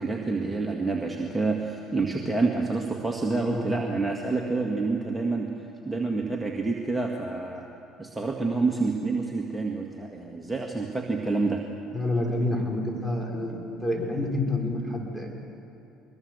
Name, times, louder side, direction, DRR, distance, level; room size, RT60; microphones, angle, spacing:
voice 1, 0.0-5.5 5.8-7.7 8.0-11.6, right 3 dB, 10° right, 0 dB, 2.2 m, -28 dB
voice 2, 11.9-15.3, left 1 dB, 15° left, 0 dB, 6.1 m, -28 dB
23.0 x 21.5 x 6.8 m, 2.7 s
hypercardioid pair, 60°, 0 cm